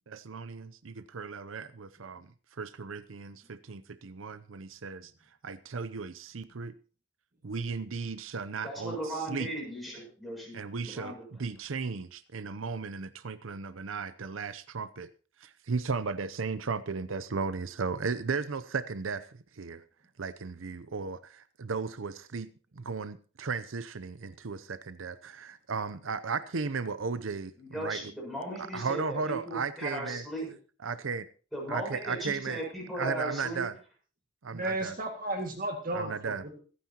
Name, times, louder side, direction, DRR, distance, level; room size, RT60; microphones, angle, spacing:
voice 1, 0.1-2.2 2.6-5.0 5.4-6.7 7.4-9.0 9.3-9.5 10.5-11.1 11.4-15.1 15.7-19.2 19.6-19.8 20.2-21.2 21.6-22.5 22.9-27.5 27.8-28.0 28.7-30.2 30.8-31.2 31.7-32.6 33.0-33.7 34.4-34.9 35.9-36.4, right 5 dB, 85° right, 0.7 m, -35 dB
voice 2, 8.6-11.5 27.6-30.5 31.5-33.7, right 1 dB, ahead, 7.1 m, -37 dB
voice 3, 34.5-36.6, right 1 dB, 45° right, 2.0 m, -34 dB
25.0 x 9.6 x 2.9 m
head